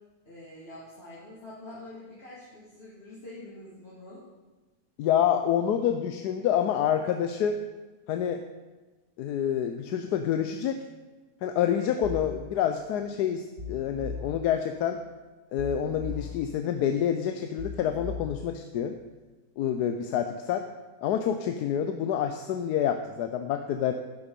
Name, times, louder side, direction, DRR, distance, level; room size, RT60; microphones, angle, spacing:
voice 1, 0.3-4.2, left 1 dB, 40° left, -7 dB, 2.1 m, -45 dB
voice 2, 5.0-7.6 8.1-8.4 9.2-10.8 11.4-15.0 15.5-18.9 19.6-20.6 21.0-23.9, left 9 dB, 90° left, 7 dB, 1.2 m, -27 dB
sound 1, 12.0-12.4 13.6-14.4 15.6-16.4 17.6-18.4, left 4 dB, 55° right, 2.9 m, -37 dB
11.5 x 7.0 x 5.2 m, 1.2 s
omnidirectional pair, 1.7 m